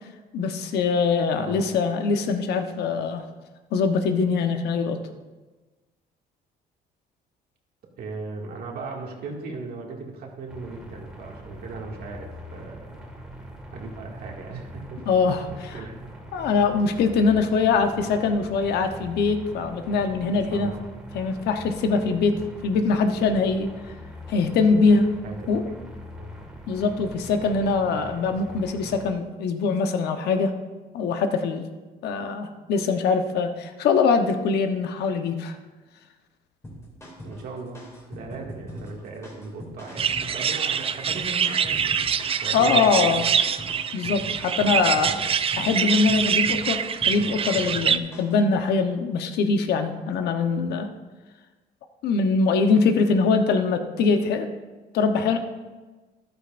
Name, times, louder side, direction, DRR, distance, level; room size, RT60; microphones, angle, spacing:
voice 1, 0.3-3.2 3.7-5.0 15.1-15.8 16.3-20.7 21.1-22.3 22.6-23.7 24.3-25.1 25.5-25.6 26.7-30.5 30.9-31.7 32.0-35.5 42.5-43.2 43.9-45.1 45.6-46.8 47.1-50.9 52.0-54.5 54.9-55.4, left 4 dB, 75° left, 6 dB, 1.0 m, -23 dB
voice 2, 8.0-13.0 13.7-15.0 15.7-15.9 20.5-20.8 25.2-25.5 26.2-26.3 37.2-37.8 38.1-42.1 42.4-43.3 45.0-45.2, right 3 dB, 65° right, 0 dB, 2.2 m, -37 dB
sound 1, 10.5-29.1, equal, 5° right, 1.9 m, -42 dB
sound 2, 36.6-48.4, equal, 15° left, 2.7 m, -41 dB
sound 3, 40.0-48.0, right 7 dB, 35° right, 0.4 m, -25 dB
13.0 x 11.5 x 2.6 m, 1.3 s
cardioid pair, 110°, 17 cm